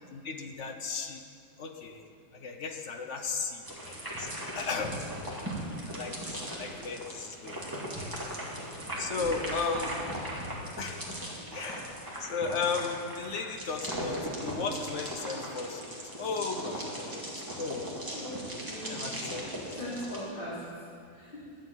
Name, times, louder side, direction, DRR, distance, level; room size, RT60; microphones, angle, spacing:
voice 1, 0.1-1.2 1.6-2.0 2.3-4.3 4.5-4.9 5.9-7.6 9.0-9.9 10.8-11.2 11.5-11.9 12.2-17.9 18.8-19.8, left 5 dB, 50° left, 5 dB, 1.1 m, -35 dB
sound 1, 3.6-20.2, equal, 15° right, 2.1 m, -38 dB
voice 2, 5.3-6.0 6.3-6.4 7.5-8.7 9.2-9.3 18.1-18.3 18.6-19.1 19.7-20.9 21.1-21.5, equal, 30° left, -10 dB, 3.1 m, -42 dB
12.0 x 7.6 x 8.9 m, 2.4 s
omnidirectional pair, 1.7 m